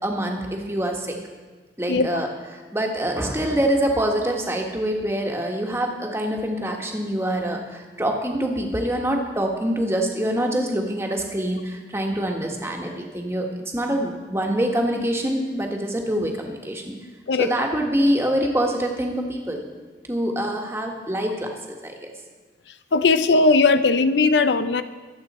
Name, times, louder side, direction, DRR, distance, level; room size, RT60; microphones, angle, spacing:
voice 1, 0.0-1.2 1.8-2.3 2.7-13.5 13.7-17.0 17.4-19.6 20.1-21.9, right 1 dB, 15° right, 1 dB, 1.5 m, -25 dB
voice 2, 1.9-2.2 17.3-17.5 22.9-24.8, left 3 dB, 85° left, 11 dB, 0.6 m, -18 dB
23.0 x 8.1 x 4.3 m, 1.3 s
head